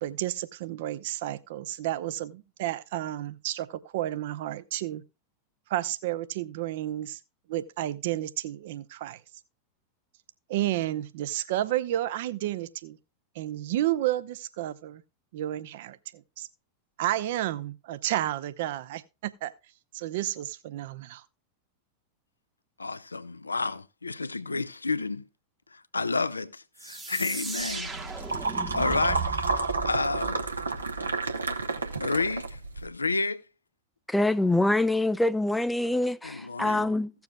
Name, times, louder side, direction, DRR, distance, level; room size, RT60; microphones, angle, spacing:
voice 1, 0.0-5.0 5.7-7.2 7.5-9.2 10.5-13.0 13.3-15.0 15.3-16.5 17.0-19.5 19.9-21.2, right 14 dB, 55° right, 0.7 m, -31 dB
voice 2, 22.8-25.2 25.7-27.9 28.7-29.2 29.5-30.4 31.9-33.4 36.2-36.9, left 3 dB, 80° left, 0.5 m, -30 dB
sound 1, 26.8-31.4, right 5 dB, 15° right, 1.0 m, -37 dB
sound 2, 27.6-32.9, right 3 dB, 80° right, 1.0 m, -31 dB
voice 3, 34.1-37.1, left 2 dB, 5° left, 0.4 m, -25 dB
16.5 x 7.0 x 2.3 m
figure-of-eight pair, 90°, 0 cm